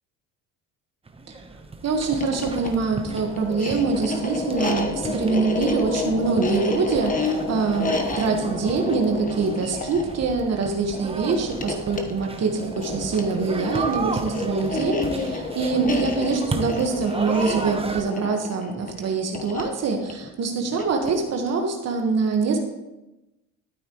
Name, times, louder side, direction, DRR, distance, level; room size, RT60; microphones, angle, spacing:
sound 1, 1.1-18.0, right 3 dB, 15° right, 0.9 m, -35 dB
voice 1, 1.8-22.6, right 4 dB, 50° right, 3 dB, 1.5 m, -24 dB
sound 2, 2.0-21.3, left 3 dB, 25° left, 1.2 m, -30 dB
13.0 x 8.7 x 3.1 m, 0.99 s
cardioid pair, 105°, 34 cm